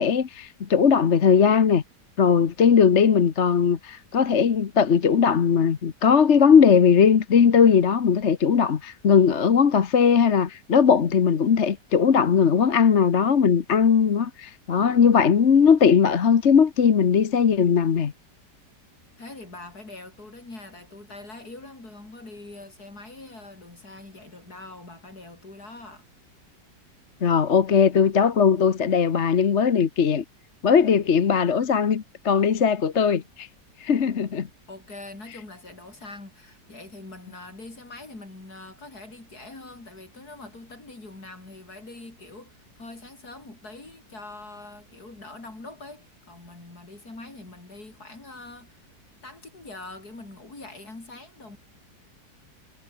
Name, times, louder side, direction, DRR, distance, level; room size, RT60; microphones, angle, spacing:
voice 1, 0.0-1.8 2.2-18.1 27.2-30.2 30.6-33.5 33.8-34.5, left 6 dB, 45° left, 1.3 m, -19 dB
voice 2, 19.2-26.1 34.7-48.9 49.2-51.6, left 2 dB, 60° left, 6.4 m, -43 dB
omnidirectional pair, 1.9 m